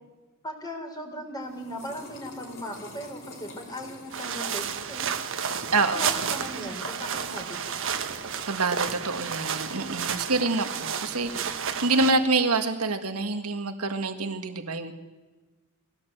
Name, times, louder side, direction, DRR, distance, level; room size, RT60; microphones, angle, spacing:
voice 1, 0.4-5.1 5.7-7.8, equal, 20° left, 2 dB, 3.7 m, -38 dB
sound 1, 1.4-8.5, left 2 dB, 60° left, 4.0 m, -48 dB
sound 2, 4.1-12.1, right 7 dB, 60° right, 1.4 m, -31 dB
voice 2, 8.5-14.9, right 3 dB, 80° right, 7 dB, 1.7 m, -26 dB
22.0 x 17.0 x 8.0 m, 1.2 s
head